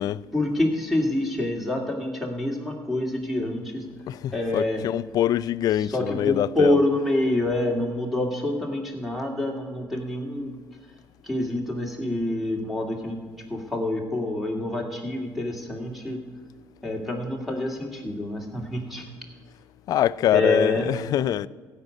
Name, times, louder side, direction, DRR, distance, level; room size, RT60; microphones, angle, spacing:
voice 1, 0.3-3.8 4.3-4.8 5.9-10.5 11.2-16.2 16.8-19.0 20.3-20.9, left 1 dB, ahead, 2.3 m, -27 dB
voice 2, 4.1-6.8 19.9-21.5, left 12 dB, 60° left, 0.4 m, -24 dB
15.5 x 5.3 x 9.5 m
cardioid pair, 110°, 7 cm